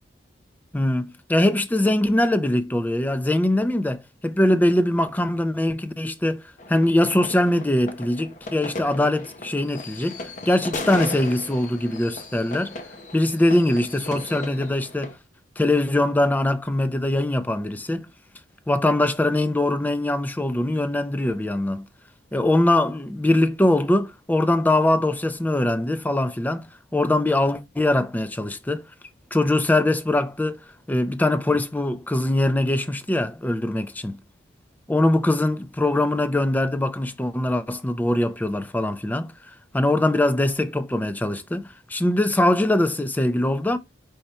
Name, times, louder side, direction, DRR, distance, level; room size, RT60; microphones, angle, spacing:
voice 1, 0.7-6.4 6.7-12.7 13.1-15.1 15.6-18.1 18.7-21.9 22.3-26.7 26.9-28.8 29.3-30.6 30.9-34.2 34.9-43.8, left 1 dB, 10° left, 0.3 m, -22 dB
sound 1, 6.6-15.1, left 2 dB, 40° left, 0.6 m, -36 dB
4.9 x 2.2 x 4.1 m
head